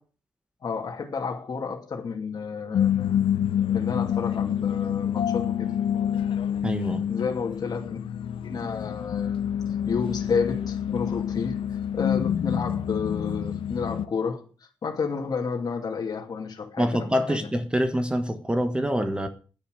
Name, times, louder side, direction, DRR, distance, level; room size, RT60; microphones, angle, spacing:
voice 1, 0.6-3.2 3.7-5.7 7.1-8.0 8.4-9.4 9.9-14.5 14.8-17.5, left 5 dB, 45° left, 2.6 m, -31 dB
sound 1, 2.7-14.1, left 9 dB, 90° left, 0.8 m, -27 dB
voice 2, 6.6-7.0 16.8-19.3, equal, 10° right, 1.4 m, -25 dB
10.5 x 10.0 x 6.7 m
wide cardioid pair, 140°, 9 cm